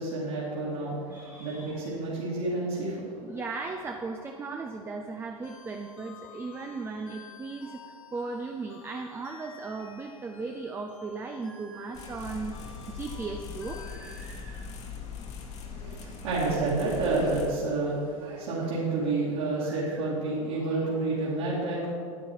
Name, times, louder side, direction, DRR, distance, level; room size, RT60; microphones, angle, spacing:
voice 1, 0.0-1.0 1.4-3.0 15.7-21.9, right 2 dB, 55° right, -7 dB, 2.5 m, -29 dB
voice 2, 0.7-1.9 3.2-14.8 19.6-20.1, right 3 dB, 15° right, 4 dB, 0.6 m, -37 dB
sound 1, 5.4-14.2, left 4 dB, 70° left, 3.0 m, -51 dB
sound 2, 11.9-17.5, left 5 dB, 40° left, 1.6 m, -41 dB
10.0 x 9.3 x 4.7 m, 2.3 s
figure-of-eight pair, 85°, 18 cm